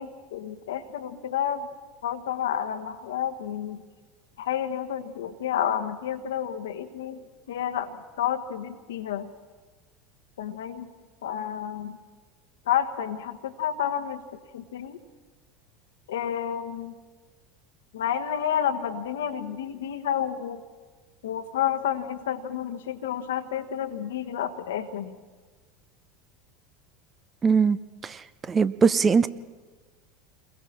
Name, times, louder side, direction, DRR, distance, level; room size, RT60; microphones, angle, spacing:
voice 1, 0.0-1.7 2.0-3.8 4.4-7.2 7.5-9.3 10.4-10.9 11.2-11.9 12.7-14.2 14.5-15.0 16.1-16.9 17.9-20.6 21.2-25.2, left 9 dB, 70° left, 7 dB, 1.3 m, -30 dB
voice 2, 27.4-27.8 28.0-28.2 28.5-29.3, right 5 dB, 25° right, 15 dB, 0.8 m, -20 dB
29.0 x 22.0 x 4.3 m, 1.4 s
figure-of-eight pair, 80°, 0 cm